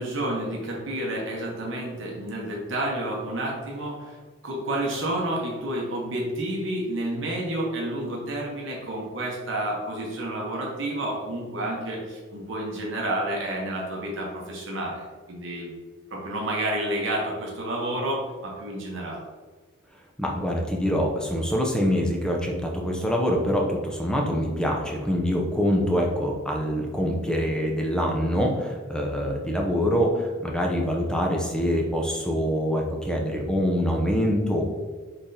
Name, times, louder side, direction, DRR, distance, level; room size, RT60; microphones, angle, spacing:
voice 1, 0.0-4.2 4.4-15.0 15.3-15.7 16.1-19.2, right 1 dB, 70° right, -2 dB, 1.0 m, -30 dB
voice 2, 20.2-34.6, equal, 5° left, 0 dB, 0.5 m, -25 dB
5.8 x 3.3 x 2.7 m, 1.4 s
head